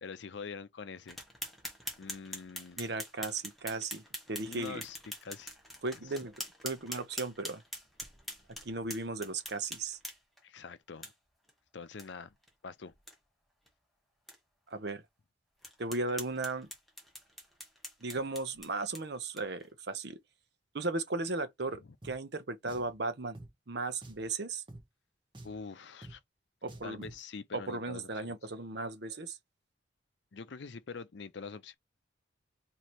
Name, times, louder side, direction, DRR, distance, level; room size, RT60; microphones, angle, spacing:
voice 1, 0.0-1.2 2.0-2.8 4.5-5.5 10.4-11.1 11.7-12.3 12.6-12.9 21.8-21.9 25.4-26.2 26.8-28.4 30.3-31.7, left 5 dB, 65° left, 0.6 m, -45 dB
sound 1, 1.1-10.4 11.0-11.1 11.5-11.6 12.0-12.1 12.4-12.5 12.9-13.1 13.7-13.8 14.3-14.4 14.9-15.0 15.6-19.7, equal, ahead, 1.0 m, -44 dB
voice 2, 2.8-4.0 4.3-4.8 5.8-6.3 6.6-7.6 8.6-10.0 14.7-15.0 15.8-16.7 18.0-20.2 20.7-23.4 23.7-24.6 26.6-27.1 27.5-29.4, right 3 dB, 55° right, 0.7 m, -36 dB
Drum, 22.0-22.2 22.7-22.9 23.3-23.5 24.0-24.3 24.7-24.8 25.3-25.6 26.0-26.2 26.7-27.2, right 1 dB, 25° right, 1.0 m, -48 dB
3.2 x 2.8 x 4.3 m
head